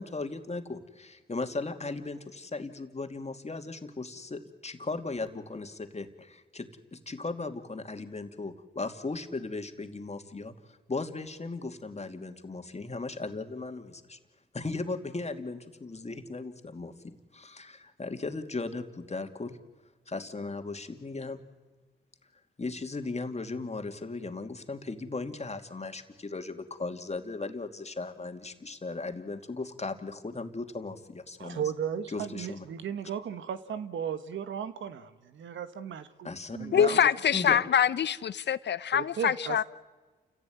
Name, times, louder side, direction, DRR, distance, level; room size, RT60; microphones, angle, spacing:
voice 1, 0.0-14.2 14.5-19.6 20.1-21.4 22.6-31.6 32.1-32.6 36.2-37.7, left 3 dB, 35° left, 6 dB, 2.7 m, -37 dB
voice 2, 31.4-37.0 38.9-39.6, right 8 dB, 80° right, 11 dB, 1.5 m, -35 dB
voice 3, 36.7-39.6, left 8 dB, 65° left, 16 dB, 0.7 m, -25 dB
29.0 x 16.0 x 9.5 m, 1.3 s
supercardioid pair, 50°, 19 cm